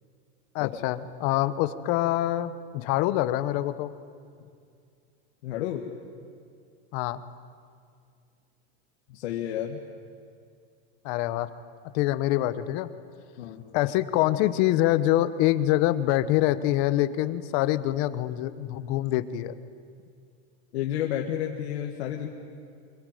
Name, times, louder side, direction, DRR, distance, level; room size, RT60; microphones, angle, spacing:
voice 1, 0.5-3.9 6.9-7.2 11.0-11.5 11.9-12.9 13.7-19.5, left 14 dB, 50° left, 13 dB, 1.2 m, -25 dB
voice 2, 5.4-5.9 9.1-9.8 13.4-13.7 20.7-22.3, left 11 dB, 90° left, 1 dB, 2.1 m, -31 dB
25.0 x 21.5 x 9.3 m, 2.3 s
supercardioid pair, 160°, 33 cm